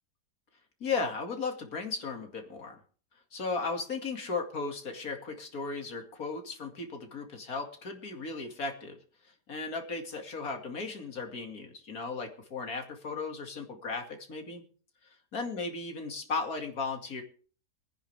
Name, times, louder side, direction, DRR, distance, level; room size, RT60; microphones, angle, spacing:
voice 1, 0.8-2.8 3.3-9.0 9.5-14.6 15.3-17.2, left 4 dB, 60° left, 4 dB, 2.8 m, -36 dB
22.5 x 10.0 x 3.5 m, 0.41 s
omnidirectional pair, 1.7 m